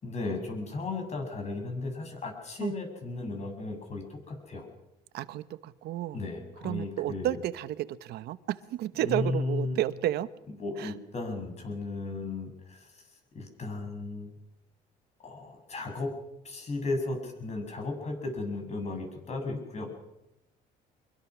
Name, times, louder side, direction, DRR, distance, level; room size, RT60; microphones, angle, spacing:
voice 1, 0.0-4.7 6.1-7.4 9.0-9.8 10.6-13.0 13.3-14.3 15.2-16.1 16.4-19.9, left 3 dB, 40° left, 3 dB, 7.5 m, -35 dB
voice 2, 5.1-6.2 6.6-10.3 10.8-10.9, right 13 dB, 75° right, 15 dB, 1.0 m, -32 dB
24.5 x 22.5 x 6.2 m, 0.85 s
cardioid pair, 110°, 17 cm